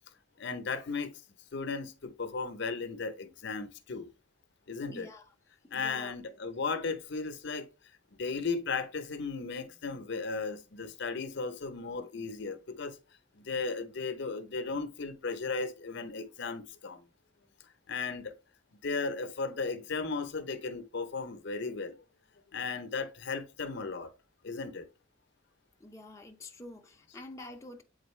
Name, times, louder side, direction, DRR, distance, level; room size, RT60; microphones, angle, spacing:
voice 1, 0.4-1.1 1.5-4.1 4.7-5.1 5.7-7.7 8.2-13.0 13.4-17.0 17.9-18.4 18.8-22.0 22.5-24.1 24.4-24.9, left 4 dB, 60° left, 0.7 m, -35 dB
voice 2, 4.9-5.2 5.6-6.1 25.8-27.8, left 2 dB, 15° left, 0.5 m, -47 dB
7.9 x 3.9 x 3.1 m
head